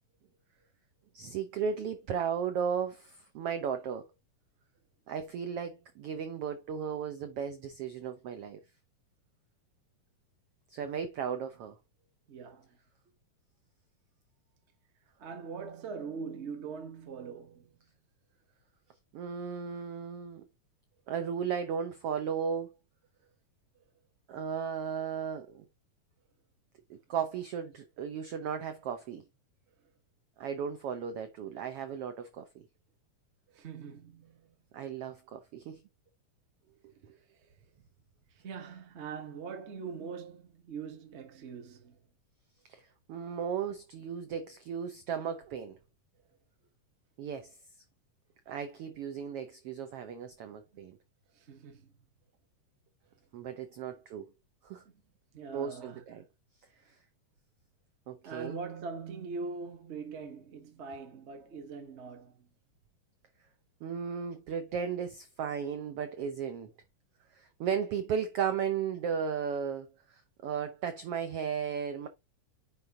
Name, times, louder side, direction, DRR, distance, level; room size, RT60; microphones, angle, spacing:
voice 1, 1.1-4.1 5.1-8.6 10.7-11.8 19.1-20.4 21.1-22.7 24.3-25.6 26.9-29.2 30.4-32.5 34.7-35.8 42.7-42.8 43.1-45.8 47.2-47.5 48.5-51.0 53.3-54.3 54.6-54.8 55.5-56.2 58.1-58.6 63.8-66.7 67.4-72.1, right 7 dB, 75° right, 1.4 m, -35 dB
voice 2, 12.3-12.8 15.2-17.8 33.5-34.6 37.3-37.5 38.3-42.0 50.7-50.8 51.3-51.9 53.8-54.0 54.8-55.0 55.3-56.2 58.2-62.5, right 5 dB, 40° right, 1.0 m, -42 dB
9.9 x 3.8 x 3.8 m
omnidirectional pair, 3.7 m